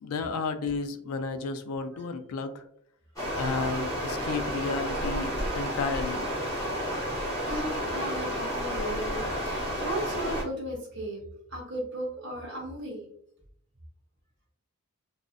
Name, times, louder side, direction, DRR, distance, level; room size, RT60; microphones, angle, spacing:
voice 1, 0.0-2.7 3.4-5.3 5.5-6.4, left 4 dB, 75° left, 8 dB, 0.3 m, -32 dB
Stream, 3.2-10.4, equal, 15° left, 0.7 m, -31 dB
voice 2, 7.4-11.2 11.5-13.1, right 1 dB, 50° right, -2 dB, 0.8 m, -35 dB
2.5 x 2.1 x 2.4 m, 0.67 s
head